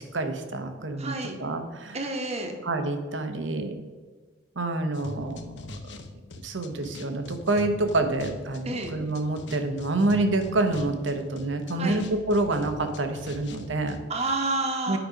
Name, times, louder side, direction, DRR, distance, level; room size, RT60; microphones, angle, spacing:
voice 1, 0.0-2.0 2.6-3.8 4.6-5.4 6.4-14.0 14.9-15.0, right 2 dB, 80° right, 7 dB, 1.0 m, -27 dB
voice 2, 1.0-1.3 1.9-2.5 8.7-8.9 11.7-12.0 14.1-15.0, right 2 dB, 35° right, 4 dB, 1.1 m, -29 dB
sound 1, 4.9-14.0, left 2 dB, 65° left, 0.7 m, -42 dB
9.1 x 5.1 x 5.1 m, 1.4 s
head